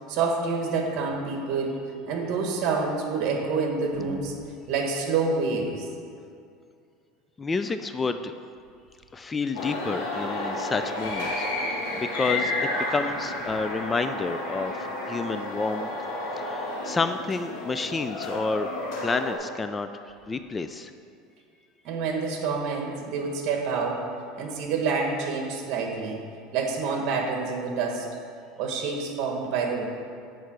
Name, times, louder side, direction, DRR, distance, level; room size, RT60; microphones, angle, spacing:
voice 1, 0.1-1.8 2.1-4.4 4.7-5.9 21.8-24.1 24.4-26.2 26.5-28.1 28.6-29.9, right 4 dB, 55° right, 2 dB, 1.4 m, -27 dB
voice 2, 7.4-8.3 9.1-15.9 16.4-18.7 19.0-19.9 20.3-20.9, left 4 dB, 20° left, 9 dB, 0.3 m, -30 dB
sound 1, 9.5-19.4, left 2 dB, 65° left, 2.2 m, -31 dB
8.5 x 4.6 x 6.2 m, 2.4 s
supercardioid pair, 125°, 0 cm